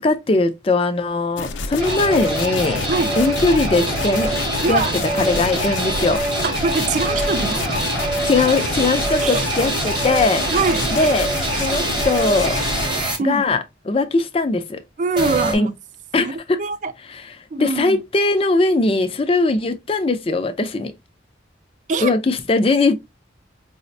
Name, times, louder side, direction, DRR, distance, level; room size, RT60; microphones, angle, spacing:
voice 1, 0.0-2.8 3.2-4.3 4.7-4.8 5.2-6.2 8.3-10.5 10.9-11.3 11.6-12.6 13.2-14.8 15.5-15.7 16.1-16.6 17.0-20.9 22.0-23.0, left 3 dB, 30° left, 0.4 m, -20 dB
sound 1, 1.4-12.9, left 4 dB, 90° left, 0.5 m, -29 dB
sound 2, 1.8-13.2 15.2-15.6, right 1 dB, 25° right, 0.9 m, -24 dB
voice 2, 4.6-4.9 6.4-7.9 9.2-9.4 10.5-11.1 13.2-13.5 15.0-15.7 16.2-16.3 16.6-16.9 17.5-18.0 21.9-22.1, right 4 dB, 40° right, 0.3 m, -23 dB
4.8 x 2.1 x 2.5 m
head